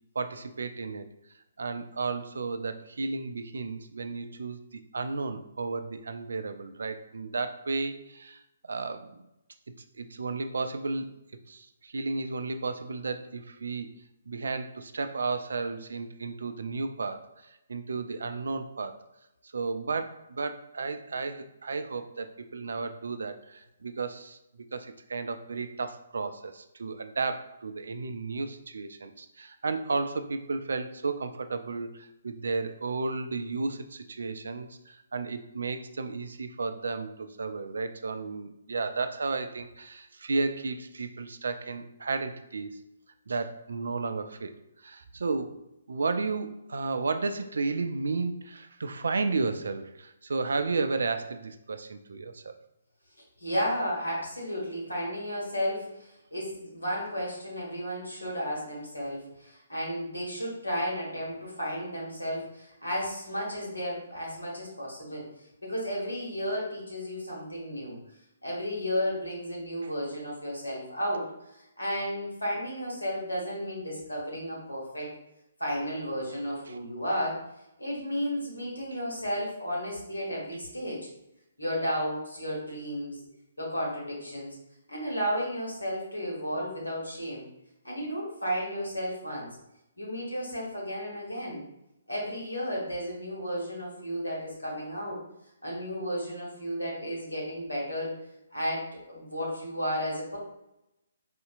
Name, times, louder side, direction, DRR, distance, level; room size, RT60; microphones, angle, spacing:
voice 1, 0.2-1.1 1.6-9.2 9.9-11.1 11.5-13.9 14.3-19.0 19.4-24.4 24.7-42.8 43.3-44.5 44.8-45.6 45.9-52.5 69.8-69.9 75.0-75.1 76.7-76.8, right 3 dB, 65° right, 9 dB, 0.3 m, -33 dB
voice 2, 53.4-65.2 65.6-68.0 68.4-71.3 71.8-75.1 75.6-77.4 77.8-81.1 81.6-83.2 83.6-84.5 84.9-87.4 87.8-89.6 90.0-91.6 92.1-95.2 95.6-98.1 98.5-100.4, equal, 85° left, -4 dB, 1.5 m, -33 dB
4.2 x 2.7 x 2.4 m, 0.86 s
figure-of-eight pair, 130°, 0 cm